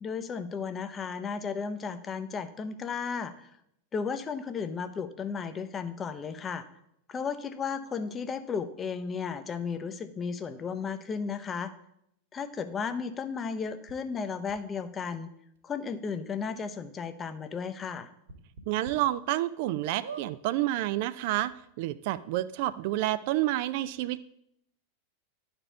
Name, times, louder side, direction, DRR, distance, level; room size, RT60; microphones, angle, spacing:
voice 1, 0.0-3.5 3.9-6.7 7.1-11.7 12.3-15.3 15.6-18.1, left 5 dB, 20° left, 10 dB, 0.7 m, -34 dB
sound 1, 13.9-14.0 14.5-14.6 15.5-15.6 16.0-16.1 16.5-16.6 18.2-18.9 19.4-19.5 20.0-20.3 21.1-21.2 21.4-21.5, right 5 dB, 65° right, 1.7 m, -43 dB
voice 2, 18.7-24.2, right 15 dB, 50° right, 14 dB, 0.4 m, -29 dB
11.0 x 4.4 x 6.9 m, 0.75 s
figure-of-eight pair, 90°, 0 cm